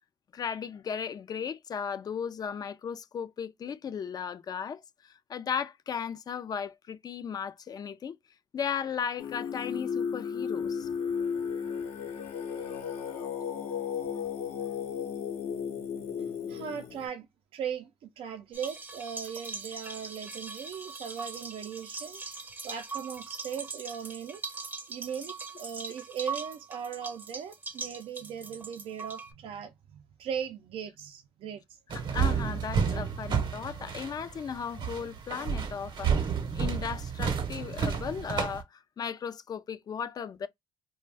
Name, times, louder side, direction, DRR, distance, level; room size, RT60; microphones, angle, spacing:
voice 1, 0.3-8.2 8.5-10.9 31.9-36.3 36.5-40.5, left 7 dB, 40° left, 0.4 m, -36 dB
Singing, 9.2-17.1, left 7 dB, 80° left, 0.8 m, -34 dB
voice 2, 16.5-17.3 17.5-24.4 24.9-31.6, right 8 dB, 70° right, 0.4 m, -38 dB
sound 1, 18.5-29.3, right 3 dB, 20° right, 0.6 m, -41 dB
sound 2, 31.9-38.6, right 6 dB, 55° right, 0.8 m, -30 dB
2.4 x 2.1 x 3.3 m
cardioid pair, 90°, 10 cm